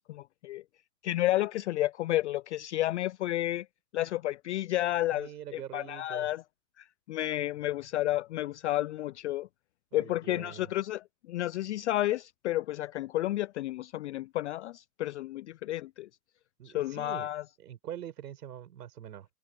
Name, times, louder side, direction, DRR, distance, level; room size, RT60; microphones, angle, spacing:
voice 1, 0.1-0.6 1.0-3.7 3.9-6.4 6.8-9.5 9.9-16.1 16.7-17.4, left 15 dB, 50° left, 0.4 m, -31 dB
voice 2, 5.1-6.3 9.9-10.7 16.6-17.3 17.6-19.3, right 10 dB, 70° right, 5.9 m, -44 dB
hypercardioid pair, 125°, 49 cm